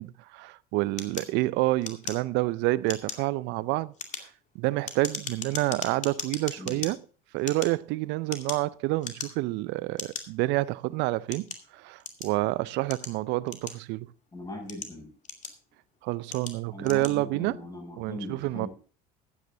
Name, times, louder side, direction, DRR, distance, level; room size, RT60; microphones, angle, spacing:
voice 1, 0.0-3.9 4.2-4.3 4.5-7.0 7.3-11.5 11.7-14.1 16.0-17.6 18.0-18.7, right 19 dB, 60° right, 0.6 m, -28 dB
sound 1, 1.0-2.5 2.8-3.3 3.8-6.9 7.4-8.7 9.0-9.5 10.0-10.2 10.9-12.4 12.9-14.1 14.5-15.7 16.3-16.6 16.8-17.2, left 6 dB, 35° left, 2.4 m, -38 dB
voice 2, 14.3-15.1 16.7-18.7, left 1 dB, 20° left, 7.2 m, -40 dB
14.5 x 9.4 x 3.9 m
hypercardioid pair, 75°, 20 cm